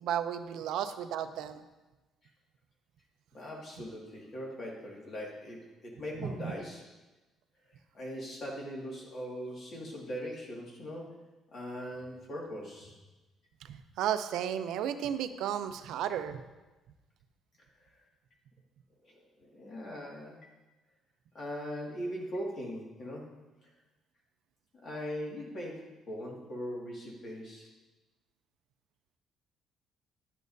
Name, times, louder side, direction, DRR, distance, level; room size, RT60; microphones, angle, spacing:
voice 1, 0.0-1.6 6.2-6.5 13.7-16.4, right 9 dB, 80° right, 10 dB, 0.5 m, -33 dB
voice 2, 3.3-6.8 7.9-11.2 11.5-13.0 19.1-20.4 21.3-23.3 23.6-23.7 24.8-27.7, equal, 40° left, -2 dB, 1.9 m, -40 dB
11.5 x 8.4 x 2.7 m, 1.1 s
cardioid pair, 170°, 0 cm